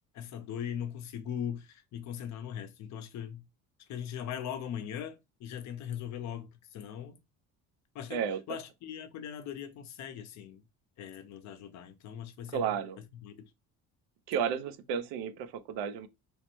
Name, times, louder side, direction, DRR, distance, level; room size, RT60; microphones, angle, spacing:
voice 1, 0.1-3.4 3.9-7.2 7.9-8.2 8.5-10.6 11.0-12.6 13.2-13.5, left 9 dB, 50° left, 0.6 m, -40 dB
voice 2, 12.5-13.0 14.3-16.1, right 7 dB, 80° right, 0.6 m, -32 dB
3.1 x 2.1 x 3.0 m
cardioid pair, 120°, 36 cm